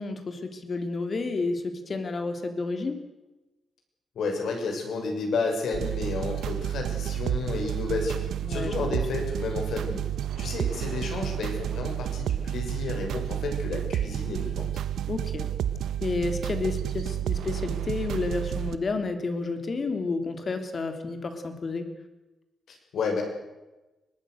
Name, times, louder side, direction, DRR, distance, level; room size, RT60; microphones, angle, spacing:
voice 1, 0.0-3.0 8.4-9.0 15.1-15.5 16.0-21.9, left 3 dB, 40° left, 7 dB, 3.3 m, -31 dB
voice 2, 4.1-10.0 10.4-14.7 22.7-23.2, left 4 dB, 75° left, 3 dB, 6.6 m, -31 dB
sound 1, 5.7-18.8, right 11 dB, 85° right, 1.0 m, -30 dB
23.5 x 20.5 x 6.6 m, 1.1 s
cardioid pair, 120°, 0 cm